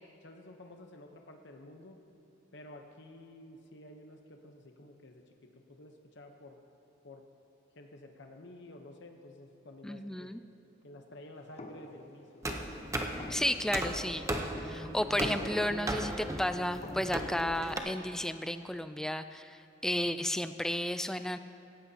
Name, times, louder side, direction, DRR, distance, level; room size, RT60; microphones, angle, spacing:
voice 1, 0.0-2.0 2.5-5.2 5.5-6.6 7.0-7.2 7.7-10.3 10.8-12.7, left 1 dB, 65° left, 4 dB, 0.9 m, -51 dB
voice 2, 9.8-10.4 13.3-14.3 14.6-21.4, left 1 dB, 5° left, 10 dB, 0.3 m, -33 dB
sound 1, 11.6-17.3, left 1 dB, 35° left, 1.0 m, -49 dB
sound 2, 12.4-17.8, right 1 dB, 15° right, 0.8 m, -36 dB
17.5 x 16.5 x 2.9 m, 2.9 s
head